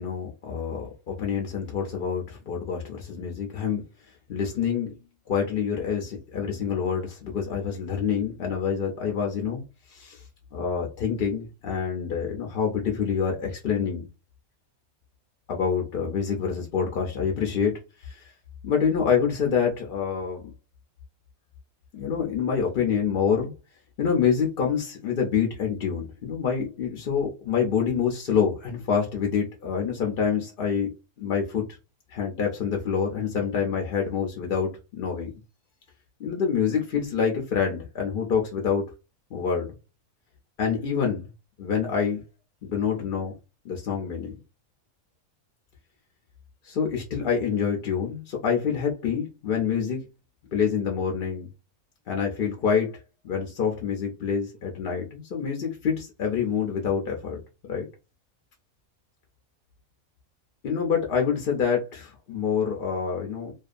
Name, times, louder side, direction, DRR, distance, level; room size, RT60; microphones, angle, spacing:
voice 1, 0.0-3.8 4.3-4.9 5.3-9.6 9.9-10.2 10.5-14.1 15.5-18.2 18.6-20.4 21.9-23.5 24.0-30.9 31.2-31.6 32.1-35.3 36.2-38.9 39.3-39.7 40.6-41.2 41.6-42.2 42.6-43.3 43.6-44.4 46.7-50.0 50.5-51.5 52.1-53.0 53.2-57.9 60.6-63.5, left 6 dB, 60° left, 0.6 m, -26 dB
2.6 x 2.3 x 2.4 m
omnidirectional pair, 1.5 m